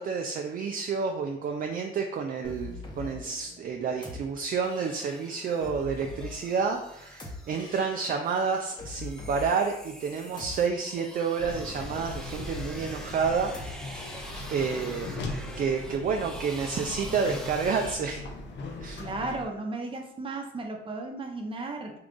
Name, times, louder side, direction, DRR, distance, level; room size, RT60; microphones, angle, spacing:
voice 1, 0.0-14.0 14.5-15.1 15.6-18.2 18.8-19.0, right 5 dB, 45° right, 3 dB, 0.4 m, -29 dB
sound 1, 2.4-15.1, left 3 dB, 25° left, 0.9 m, -44 dB
sound 2, 4.6-18.0, equal, 5° left, 0.6 m, -46 dB
sound 3, 11.4-19.5, left 2 dB, 65° left, 0.6 m, -39 dB
voice 2, 19.0-21.9, right 2 dB, 25° right, 2 dB, 0.8 m, -35 dB
3.7 x 2.3 x 3.7 m, 0.77 s
cardioid pair, 90°, 20 cm